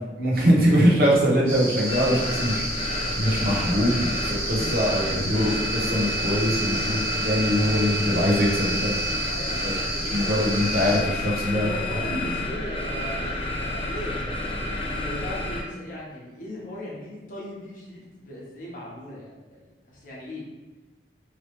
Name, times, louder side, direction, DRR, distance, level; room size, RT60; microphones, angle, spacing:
voice 1, 0.2-2.7 3.2-7.0 7.2-9.0 9.6-9.7 10.0-11.7, equal, 55° right, -4 dB, 0.8 m, -22 dB
sound 1, 1.5-11.0, right 1 dB, 35° right, 1.5 m, -32 dB
sound 2, 1.9-15.6, left 1 dB, 30° left, 0.4 m, -30 dB
voice 2, 9.0-9.6 11.3-14.2 14.5-20.4, left 1 dB, 45° left, -5 dB, 0.9 m, -37 dB
3.0 x 2.9 x 2.9 m, 1.2 s
head